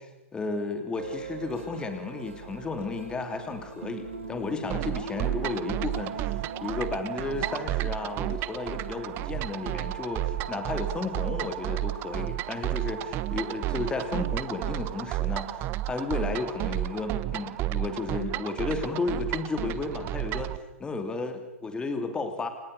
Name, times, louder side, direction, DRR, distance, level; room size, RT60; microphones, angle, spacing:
voice 1, 0.0-20.5 20.8-22.5, left 3 dB, 10° left, 7 dB, 2.9 m, -33 dB
sound 1, 1.0-17.8, right 5 dB, 75° right, 4.7 m, -42 dB
sound 2, 4.7-20.6, right 16 dB, 30° right, 1.1 m, -32 dB
28.5 x 26.5 x 6.8 m, 0.96 s
hypercardioid pair, 120°, 7 cm